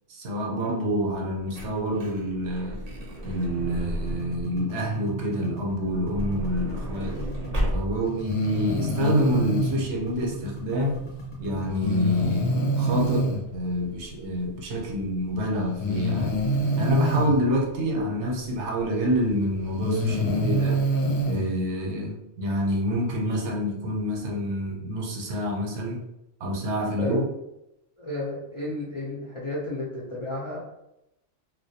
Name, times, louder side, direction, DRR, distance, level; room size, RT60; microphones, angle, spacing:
voice 1, 0.1-2.8 3.2-7.2 7.7-11.0 11.4-16.4 16.8-20.8 21.2-26.1 26.4-27.3, equal, 75° right, 0 dB, 0.9 m, -27 dB
Truck / Door, 1.1-4.7 5.7-8.2 8.9-9.0 9.2-9.4, equal, 45° right, 0.6 m, -33 dB
sound 1, 3.6-12.1, right 2 dB, 30° left, 0.7 m, -39 dB
Breathing, 8.2-9.8 11.8-13.4 14.8-14.9 15.8-17.3 18.9-19.0 19.7-21.4, equal, 70° left, 0.8 m, -25 dB
voice 2, 28.0-30.6, left 1 dB, 50° left, -7 dB, 0.3 m, -32 dB
2.2 x 2.2 x 2.7 m, 0.86 s
omnidirectional pair, 1.2 m